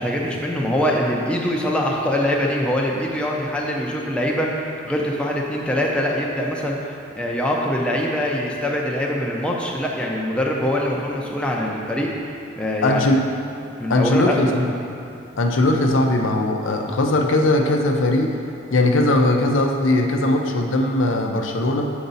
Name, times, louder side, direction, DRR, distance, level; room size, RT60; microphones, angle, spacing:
voice 1, 0.0-6.8 7.2-12.1 12.6-13.1 13.8-14.5, left 1 dB, 5° left, -2 dB, 0.5 m, -23 dB
voice 2, 12.8-13.2 13.9-14.6 15.4-18.4 18.7-21.9, left 1 dB, 85° left, 3 dB, 0.6 m, -19 dB
6.8 x 5.1 x 4.0 m, 2.8 s
head